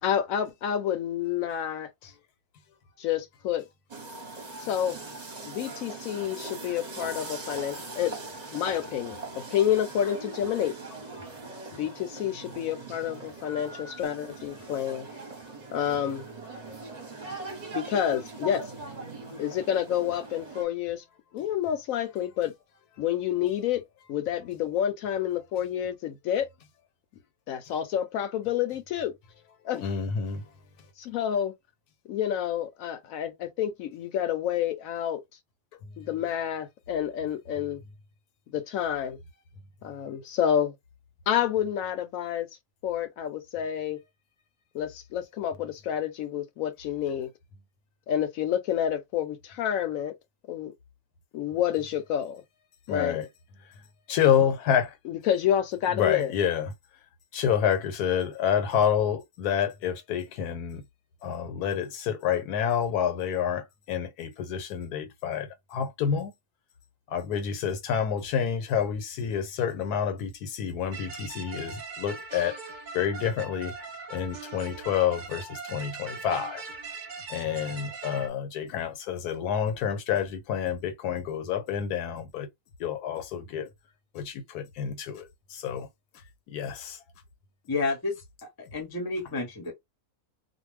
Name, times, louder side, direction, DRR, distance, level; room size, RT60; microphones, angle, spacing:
voice 1, 0.0-2.1 3.0-3.7 4.6-5.0 5.4-8.2 8.5-9.2 9.5-10.7 11.7-15.1 15.7-16.2 17.7-18.7 19.4-21.0 21.3-22.5 23.0-26.5 27.5-29.1 29.6-29.9 31.0-31.5 32.1-35.2 36.0-37.8 38.5-39.2 39.8-40.7 41.3-42.5 42.8-44.0 44.7-47.3 48.1-50.1 50.5-50.7 51.3-52.4 52.9-53.2 55.0-56.4, left 10 dB, 70° left, 0.9 m, -29 dB
sound 1, 3.9-20.6, right 3 dB, 30° right, 0.9 m, -41 dB
voice 2, 29.8-30.4 52.9-53.2 54.1-54.9 55.9-56.7 57.3-60.8 61.2-66.3 67.1-72.6 72.9-73.7 74.1-76.6 77.3-82.5 82.8-83.7 84.1-85.9 86.5-87.0, left 8 dB, 85° left, 1.2 m, -28 dB
sound 2, 70.9-78.3, right 4 dB, 65° right, 0.4 m, -40 dB
voice 3, 87.7-89.7, left 3 dB, 25° left, 0.5 m, -31 dB
2.5 x 2.2 x 3.2 m
omnidirectional pair, 1.6 m